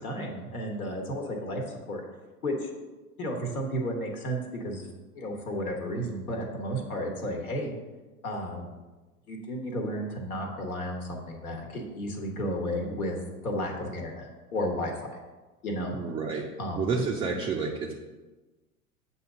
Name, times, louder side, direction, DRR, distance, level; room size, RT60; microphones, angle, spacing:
voice 1, 0.0-1.6 1.9-2.0 2.4-2.7 3.2-4.9 5.1-7.7 8.2-8.7 9.3-13.2 13.4-15.2 15.6-15.9 16.6-16.8, equal, 75° left, 1 dB, 1.3 m, -33 dB
voice 2, 15.9-18.0, right 4 dB, 15° right, -1 dB, 0.4 m, -30 dB
8.0 x 2.8 x 6.1 m, 1.2 s
figure-of-eight pair, 85°, 44 cm